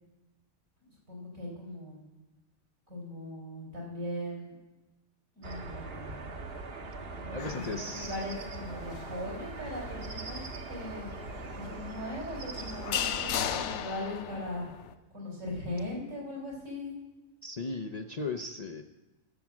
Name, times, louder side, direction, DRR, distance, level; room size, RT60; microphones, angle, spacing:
voice 1, 1.1-2.0 2.9-4.5 5.3-6.4 7.2-10.4 10.7-11.1 11.5-14.7 15.1-16.9, left 1 dB, 80° right, -3 dB, 4.6 m, -39 dB
sound 1, 5.4-13.6, right 3 dB, 50° right, 1.2 m, -41 dB
voice 2, 7.3-8.1 17.4-18.8, left 3 dB, 45° left, 5 dB, 0.5 m, -37 dB
sound 2, 7.4-14.9, left 9 dB, 65° left, 0.9 m, -38 dB
15.0 x 7.3 x 6.1 m, 1.1 s
omnidirectional pair, 1.4 m